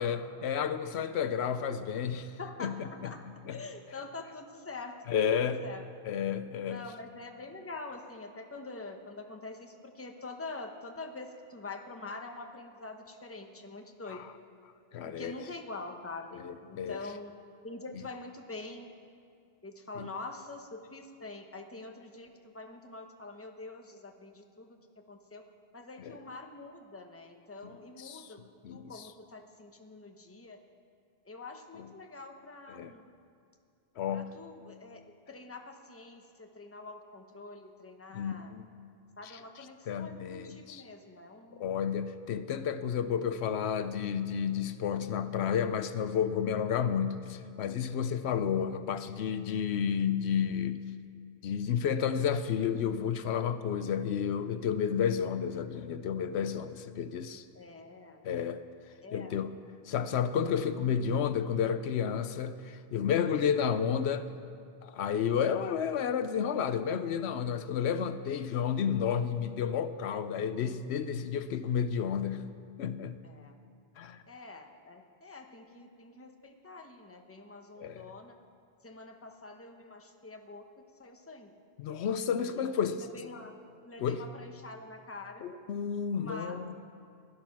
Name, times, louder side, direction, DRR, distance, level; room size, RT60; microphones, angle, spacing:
voice 1, 0.0-2.3 2.6-2.9 3.5-3.6 5.1-5.6 6.0-6.8 14.1-14.3 14.9-15.3 16.4-17.0 20.0-20.1 26.0-26.2 28.0-28.3 28.6-29.1 32.7-32.9 34.0-34.3 38.1-38.7 39.2-40.8 41.5-50.8 51.4-57.4 58.2-58.6 59.1-59.5 59.9-64.3 64.8-72.5 72.8-73.2 74.0-74.2 77.8-78.0 81.8-83.1 84.0-84.2 85.4-86.8, left 7 dB, 80° left, 11 dB, 0.9 m, -31 dB
voice 2, 2.4-3.2 3.5-5.8 6.7-14.2 15.0-16.4 16.7-17.3 17.6-18.9 19.6-24.8 25.1-25.4 25.7-28.4 28.7-30.6 31.2-33.1 34.1-35.0 35.3-38.5 39.2-41.7 48.6-48.7 53.8-54.0 57.5-58.2 59.0-59.4 73.2-73.6 74.3-78.3 78.8-80.7 81.0-81.6 82.3-83.5 83.8-85.5 86.2-86.7, left 3 dB, 15° left, 4 dB, 0.9 m, -45 dB
16.0 x 11.5 x 5.9 m, 2.5 s
omnidirectional pair, 1.1 m